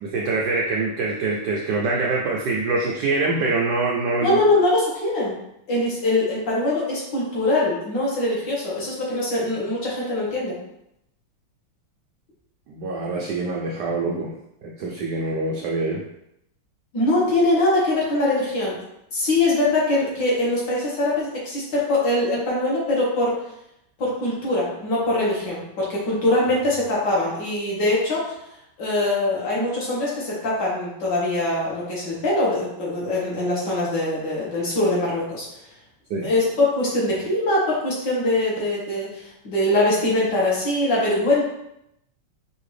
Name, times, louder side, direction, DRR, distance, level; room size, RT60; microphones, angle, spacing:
voice 1, 0.0-4.4 12.7-14.3 14.6-16.0 36.1-36.3, right 3 dB, 80° right, -2 dB, 0.9 m, -24 dB
voice 2, 4.2-5.4 5.7-10.6 16.9-18.8 19.1-23.3 24.0-28.2 28.8-35.5 36.2-41.4, left 2 dB, 55° left, -6 dB, 1.8 m, -22 dB
5.6 x 2.6 x 3.2 m, 0.80 s
omnidirectional pair, 2.4 m